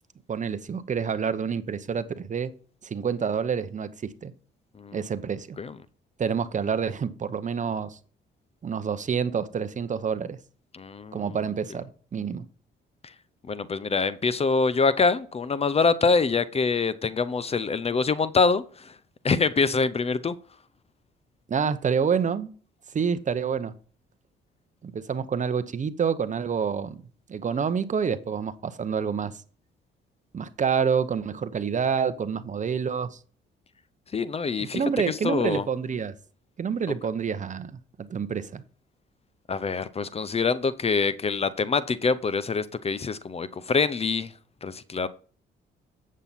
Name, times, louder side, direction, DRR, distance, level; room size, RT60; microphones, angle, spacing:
voice 1, 0.3-2.5 2.8-4.3 4.9-5.6 6.2-8.0 8.6-10.4 11.1-12.4 21.5-22.5 22.9-23.8 24.8-27.0 27.3-29.4 30.3-33.2 34.7-36.1 36.6-38.6, right 6 dB, 40° right, 0.8 m, -28 dB
voice 2, 10.7-11.4 13.5-18.9 19.2-20.3 34.1-35.6 39.5-44.3 44.6-45.1, left 4 dB, 30° left, 0.6 m, -25 dB
8.2 x 7.4 x 4.1 m
cardioid pair, 90°, 20 cm